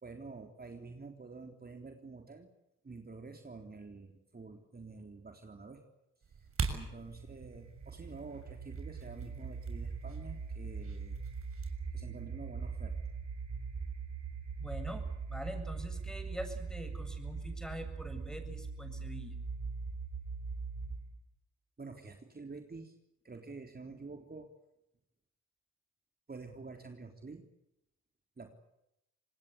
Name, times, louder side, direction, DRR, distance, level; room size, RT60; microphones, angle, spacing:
voice 1, 0.0-2.5 2.8-5.8 6.4-11.2 11.9-13.0 21.8-23.0 23.2-24.5 26.3-27.4 28.4-28.5, right 4 dB, 30° right, 4 dB, 3.6 m, -48 dB
sound 1, 6.2-11.7, right 4 dB, 50° right, 6.6 m, -43 dB
sound 2, 6.3-21.2, right 5 dB, 70° right, 5.8 m, -41 dB
voice 2, 14.6-19.4, equal, ahead, 8 dB, 7.7 m, -44 dB
26.5 x 19.5 x 8.3 m, 0.86 s
supercardioid pair, 60°, 29 cm